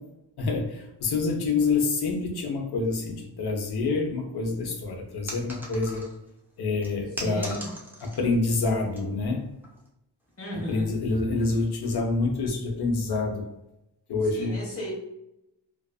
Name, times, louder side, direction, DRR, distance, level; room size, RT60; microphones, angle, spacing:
voice 1, 0.4-6.0 6.6-7.6 8.0-9.5 10.7-13.4 14.1-14.6, left 3 dB, 60° left, 2 dB, 0.6 m, -27 dB
sound 1, 5.3-6.3 6.8-8.3 8.7-9.0 9.6-9.9, right 1 dB, 5° right, 0.3 m, -39 dB
voice 2, 7.2-7.7 10.4-10.9 14.3-14.9, equal, 35° left, -3 dB, 0.9 m, -35 dB
2.3 x 2.3 x 2.2 m, 0.85 s
wide cardioid pair, 145°, 44 cm